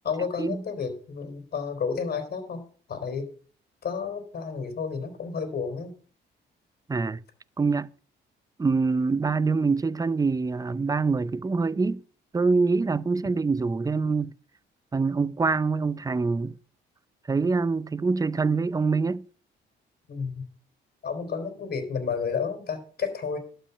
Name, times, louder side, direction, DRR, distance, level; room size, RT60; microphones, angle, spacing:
voice 1, 0.0-2.6 2.9-3.3 3.8-5.9 20.1-20.4 21.0-23.4, left 5 dB, 50° left, 3.9 m, -31 dB
voice 2, 6.9-7.2 7.6-7.9 8.6-12.0 12.3-14.3 14.9-16.5 17.3-19.3, right 4 dB, 20° right, 0.5 m, -25 dB
12.0 x 5.6 x 8.3 m
cardioid pair, 90°, 20 cm